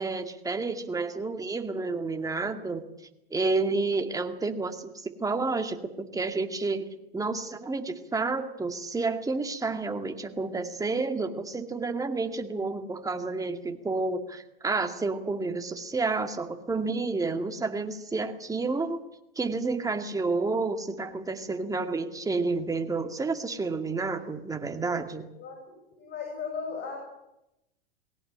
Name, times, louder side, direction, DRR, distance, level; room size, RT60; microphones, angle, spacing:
voice 1, 0.0-2.8 3.3-6.9 7.1-19.0 19.4-25.3, right 3 dB, 10° right, 6 dB, 2.2 m, -30 dB
voice 2, 25.9-27.2, left 5 dB, 35° left, 3 dB, 6.8 m, -36 dB
20.5 x 17.5 x 8.9 m, 0.87 s
hypercardioid pair, 105°, 29 cm